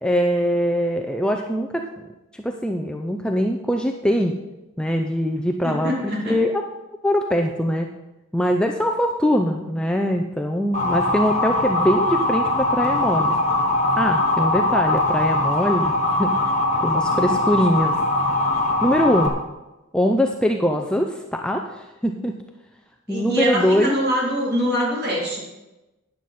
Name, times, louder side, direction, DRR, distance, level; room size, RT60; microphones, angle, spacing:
voice 1, 0.0-1.9 2.3-4.3 4.8-6.6 7.0-7.9 8.3-13.3 14.0-16.3 16.8-18.0 18.8-19.3 19.9-22.3 23.1-24.0, equal, 5° left, 3 dB, 0.5 m, -22 dB
voice 2, 5.6-6.4 17.1-17.4 23.1-25.4, equal, 45° right, -3 dB, 3.3 m, -24 dB
Motor vehicle (road) / Siren, 10.7-19.3, left 2 dB, 30° left, 1.4 m, -21 dB
12.5 x 9.4 x 4.2 m, 1.0 s
head